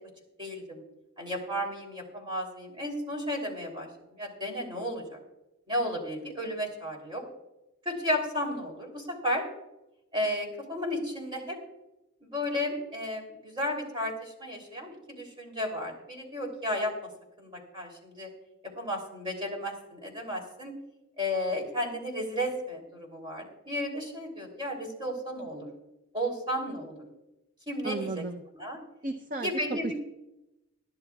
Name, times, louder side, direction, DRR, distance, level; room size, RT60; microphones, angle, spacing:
voice 1, 0.4-0.8 1.2-5.2 5.7-7.2 7.8-9.4 10.1-11.6 12.2-16.9 17.4-18.3 18.8-20.7 21.2-25.7 26.1-27.1 27.7-28.2 28.5-28.8 29.4-29.9, left 1 dB, 25° right, 1 dB, 3.1 m, -33 dB
voice 2, 27.8-28.4 29.0-29.9, right 3 dB, 40° right, 6 dB, 0.6 m, -34 dB
21.0 x 12.5 x 2.3 m, 0.92 s
head